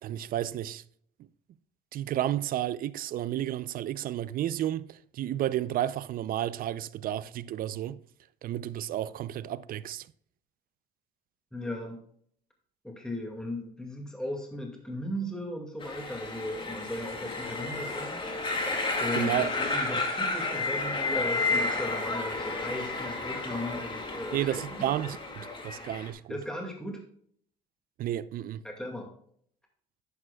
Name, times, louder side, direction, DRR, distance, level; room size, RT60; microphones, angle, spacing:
voice 1, 0.0-0.8 1.9-8.0 8.4-10.1 19.1-19.5 24.3-26.4 28.0-28.6, right 12 dB, 60° right, 0.5 m, -32 dB
voice 2, 11.5-12.0 12.8-18.2 19.0-24.8 26.3-27.0 28.6-29.1, left 1 dB, 5° left, 2.1 m, -37 dB
sound 1, 15.8-26.1, left 3 dB, 30° left, 2.1 m, -32 dB
11.0 x 8.8 x 2.3 m
cardioid pair, 110°, 17 cm